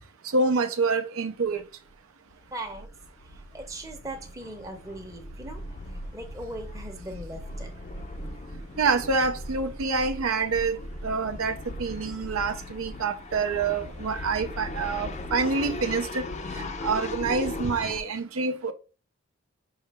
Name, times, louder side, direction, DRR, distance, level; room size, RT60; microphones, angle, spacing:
voice 1, 0.3-1.6 8.8-16.2 16.6-18.7, right 4 dB, 70° right, 0.5 m, -27 dB
sound 1, 1.5-1.6 1.9-2.0 2.3-18.0, left 2 dB, 30° left, 0.4 m, -38 dB
voice 2, 2.5-2.9 3.5-5.6 6.1-7.7, right 1 dB, 15° right, 0.7 m, -39 dB
5.6 x 2.8 x 3.4 m
head